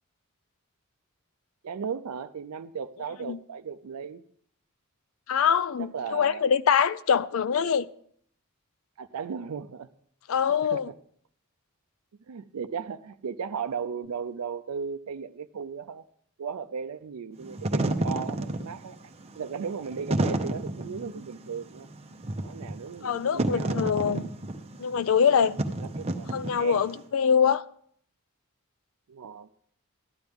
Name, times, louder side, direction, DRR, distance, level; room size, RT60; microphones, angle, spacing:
voice 1, 1.6-4.2 5.8-6.5 9.0-9.9 10.6-10.8 12.3-16.0 16.4-19.0 19.4-21.9 22.4-23.9 25.8-26.8 29.1-29.5, right 6 dB, 85° right, 0.4 m, -36 dB
voice 2, 5.3-7.9 10.3-10.9 23.0-24.3 24.8-25.6 26.3-27.6, left 7 dB, 65° left, 0.4 m, -24 dB
Wind / Fire, 17.4-26.9, right 1 dB, 30° right, 0.7 m, -31 dB
13.0 x 10.5 x 3.5 m
head